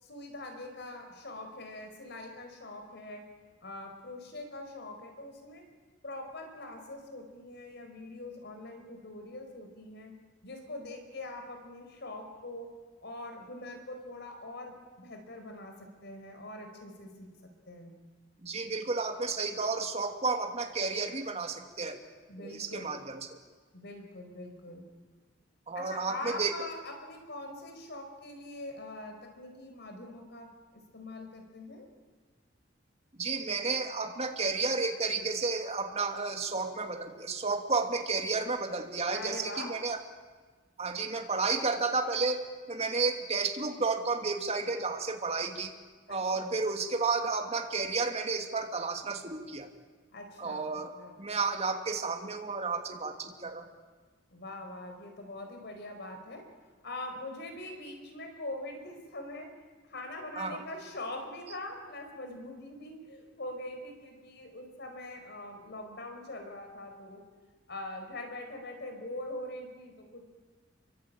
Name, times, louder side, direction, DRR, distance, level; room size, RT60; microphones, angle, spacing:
voice 1, 0.0-3.2 3.6-5.7 6.0-10.1 10.4-12.7 13.0-17.9 22.3-22.9 23.7-24.8 25.7-31.9 39.1-39.8 46.1-46.6 50.1-50.6 50.9-51.1 54.3-56.4 56.8-59.5 59.9-67.2 67.7-70.2, left 2 dB, 60° left, 5 dB, 4.9 m, -43 dB
voice 2, 18.4-22.0 22.5-23.3 25.7-26.5 33.2-40.0 40.8-45.7 46.1-49.7 50.4-50.9 51.2-53.7 60.4-60.6, right 4 dB, 35° right, 4 dB, 2.8 m, -32 dB
28.0 x 24.0 x 9.0 m, 1.4 s
head